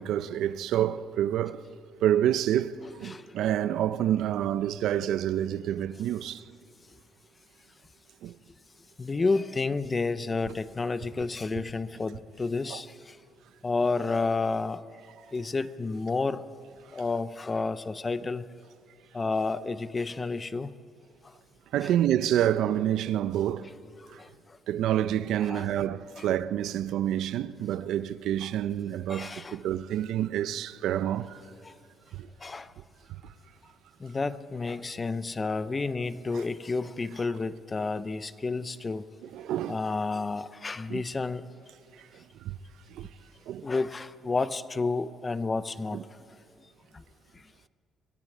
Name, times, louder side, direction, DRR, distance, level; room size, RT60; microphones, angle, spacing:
voice 1, 0.0-1.6 2.0-6.4 8.2-8.3 12.7-12.8 21.7-23.7 24.1-24.2 24.7-31.4 32.1-32.3 39.3-39.8 40.9-41.0 42.0-42.1 42.4-42.6 42.9-43.1 43.5-43.7 45.9-46.0, right 11 dB, 70° right, 0.6 m, -28 dB
voice 2, 9.0-13.2 13.6-14.8 15.3-16.4 16.9-18.4 19.1-20.7 21.8-21.9 24.2-24.3 25.4-25.7 26.2-26.3 28.4-28.5 29.1-29.6 31.6-31.7 32.4-32.7 34.0-39.0 39.7-41.5 43.6-46.0 46.9-47.0, left 3 dB, 20° left, 0.6 m, -30 dB
24.0 x 17.0 x 8.6 m
cardioid pair, 175°, 0 cm